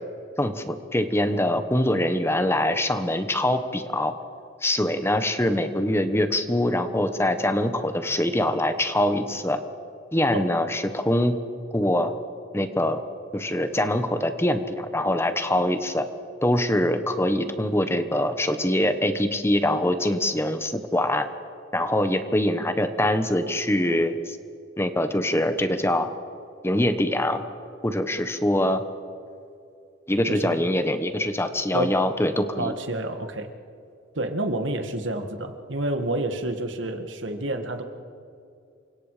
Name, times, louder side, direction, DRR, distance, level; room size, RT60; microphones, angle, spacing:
voice 1, 0.4-4.1 4.6-9.6 10.1-11.3 11.7-12.1 12.5-13.0 13.3-16.1 16.4-21.3 21.7-24.4 24.8-26.1 26.6-27.4 27.8-28.8 30.1-32.7, left 1 dB, 15° left, 9 dB, 1.2 m, -24 dB
voice 2, 32.6-33.5 34.2-37.8, right 1 dB, 80° right, 6 dB, 2.0 m, -29 dB
28.5 x 25.0 x 5.1 m, 2.4 s
head